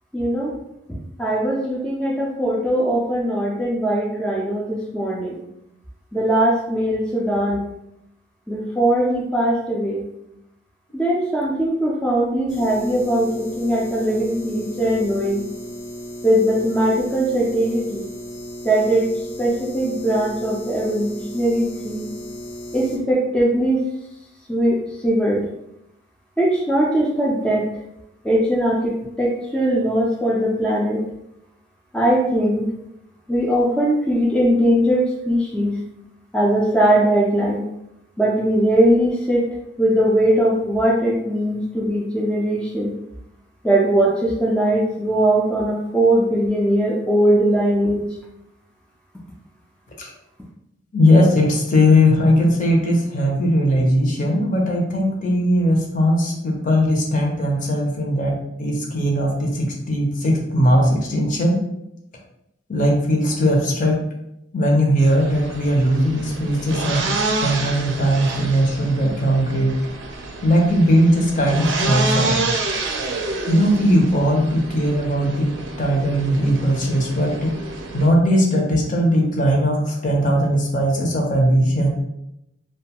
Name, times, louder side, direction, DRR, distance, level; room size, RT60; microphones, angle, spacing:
voice 1, 0.1-0.5 1.2-5.4 6.1-7.6 8.5-10.1 10.9-15.4 16.2-18.0 18.6-19.1 19.4-22.1 22.7-23.8 24.5-25.5 26.4-27.7 28.2-31.0 31.9-32.7 33.3-35.8 36.3-37.7 38.2-39.5 39.8-42.9 43.6-48.1, right 1 dB, 5° left, -4 dB, 0.3 m, -20 dB
sound 1, 12.5-23.0, equal, 85° left, 0.7 m, -35 dB
voice 2, 50.9-61.6 62.7-64.0 64.5-67.0 67.4-69.8 70.4-72.4 73.5-75.5 75.8-77.5 77.9-81.9, equal, 45° left, 0 dB, 0.6 m, -19 dB
sound 2, 65.0-78.1, right 3 dB, 75° right, 0.4 m, -28 dB
2.4 x 2.2 x 2.8 m, 0.82 s
head